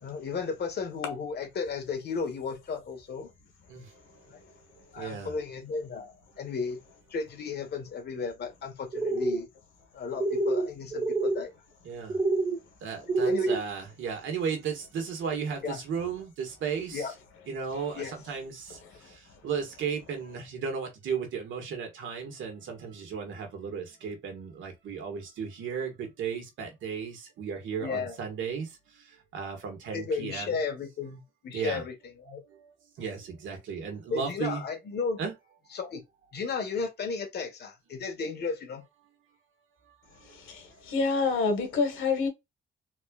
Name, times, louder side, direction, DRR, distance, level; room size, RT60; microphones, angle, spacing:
voice 1, 0.0-3.3 4.3-4.4 4.9-6.8 7.1-9.5 9.9-11.5 13.2-13.6 15.6-15.8 16.9-17.1 17.9-18.1 27.8-28.1 29.9-32.4 34.1-35.3 35.7-36.0 36.3-38.8, left 5 dB, 55° left, 1.5 m, -34 dB
voice 2, 5.0-5.3 11.9-12.1 12.8-17.1 17.5-18.6 19.4-28.7 29.3-30.6 31.5-31.8 33.0-34.6 35.2-35.3, right 6 dB, 75° right, 1.8 m, -35 dB
sound 1, 8.9-9.4 10.2-10.7 10.9-11.4 12.1-12.6 13.1-13.6, right 3 dB, 30° right, 1.2 m, -27 dB
voice 3, 40.2-42.3, left 4 dB, 85° left, 1.6 m, -27 dB
4.2 x 3.2 x 2.5 m
cardioid pair, 90°, 20 cm